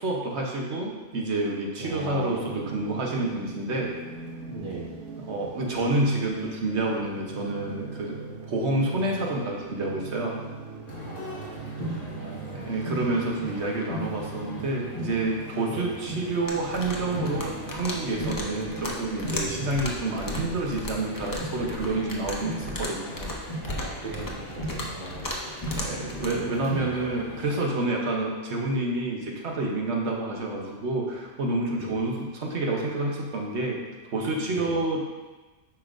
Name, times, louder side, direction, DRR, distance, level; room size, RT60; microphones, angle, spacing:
voice 1, 0.0-3.9 5.2-8.2 8.5-10.4 12.5-23.3 25.7-33.8 34.1-35.1, right 2 dB, 65° right, -1 dB, 1.2 m, -28 dB
voice 2, 1.8-2.7 4.5-5.0 11.0-12.7 15.7-15.9 19.5-19.8 23.6-25.3 26.3-27.0 31.7-31.9 34.5-34.7, right 3 dB, 45° right, -3 dB, 1.4 m, -39 dB
sound 1, 2.2-21.0, right 4 dB, 85° right, 1.1 m, -41 dB
sound 2, 10.9-27.7, equal, 45° left, 2.2 m, -38 dB
sound 3, 16.5-26.3, left 1 dB, 20° left, 0.6 m, -36 dB
8.8 x 5.5 x 2.5 m, 1.2 s
omnidirectional pair, 1.2 m